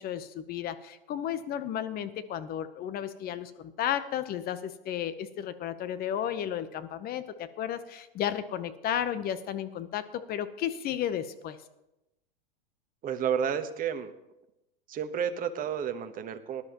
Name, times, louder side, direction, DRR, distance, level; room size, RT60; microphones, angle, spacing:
voice 1, 0.0-11.6, left 10 dB, 30° left, 12 dB, 0.8 m, -33 dB
voice 2, 13.0-14.1 14.9-16.6, right 8 dB, 30° right, 8 dB, 1.1 m, -31 dB
19.0 x 11.5 x 3.0 m, 0.93 s
hypercardioid pair, 115°, 29 cm